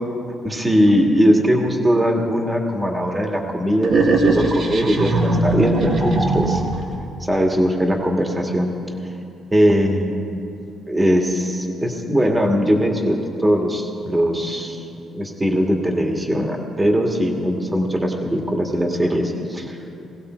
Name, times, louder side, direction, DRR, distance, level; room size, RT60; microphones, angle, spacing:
voice 1, 0.4-6.6 7.2-8.7 9.5-10.4 10.9-14.8 15.1-19.8, equal, 15° right, 1 dB, 2.2 m, -20 dB
sound 1, 3.8-6.9, right 2 dB, 60° right, 2.2 m, -19 dB
19.0 x 16.0 x 4.6 m, 2.6 s
cardioid pair, 90°, 0 cm